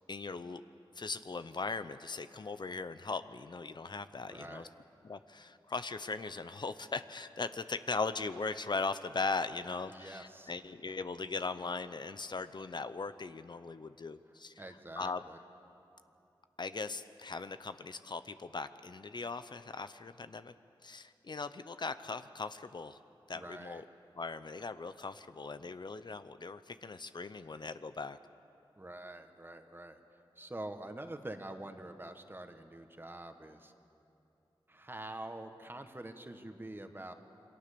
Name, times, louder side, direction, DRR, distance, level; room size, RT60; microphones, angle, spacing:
voice 1, 0.1-0.6 0.9-4.7 5.0-14.5 15.0-15.2 16.6-20.5 20.8-23.0 23.3-23.8 24.1-28.2, left 4 dB, 55° left, 11 dB, 0.7 m, -39 dB
voice 2, 4.3-4.7 9.9-10.5 14.6-15.4 23.3-23.8 28.8-30.0 30.4-33.7 34.7-37.1, right 1 dB, 25° right, 6 dB, 1.7 m, -46 dB
28.0 x 23.0 x 6.9 m, 2.8 s
wide cardioid pair, 70°, 9 cm